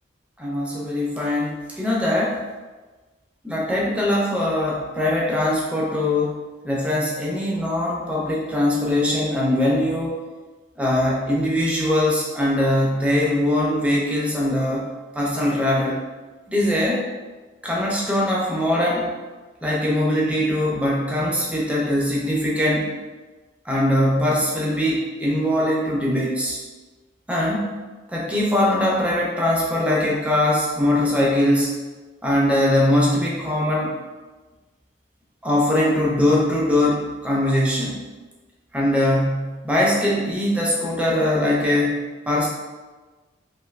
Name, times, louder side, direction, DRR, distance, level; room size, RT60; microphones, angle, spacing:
voice 1, 0.4-2.4 3.4-6.4 6.6-10.2 10.8-16.0 16.5-17.0 17.6-19.1 19.6-22.9 23.7-26.6 27.3-27.8 28.1-31.7 32.2-34.0 35.4-38.0 38.7-42.0 42.3-42.5, left 1 dB, 5° right, -4 dB, 0.5 m, -21 dB
3.1 x 2.7 x 2.4 m, 1.3 s
head